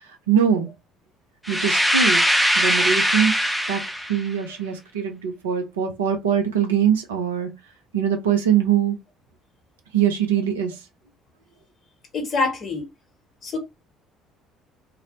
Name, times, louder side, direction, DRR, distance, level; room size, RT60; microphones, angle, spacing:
voice 1, 0.3-0.7 1.5-2.2 2.6-3.4 3.7-3.8 4.1-7.5 7.9-9.0 9.9-10.7, right 8 dB, 75° right, 0.5 m, -22 dB
sound 1, 1.5-4.2, equal, ahead, 0.4 m, -21 dB
voice 2, 12.1-12.8 13.4-13.6, left 4 dB, 45° left, 0.8 m, -25 dB
2.6 x 2.0 x 2.8 m
figure-of-eight pair, 50°, 0 cm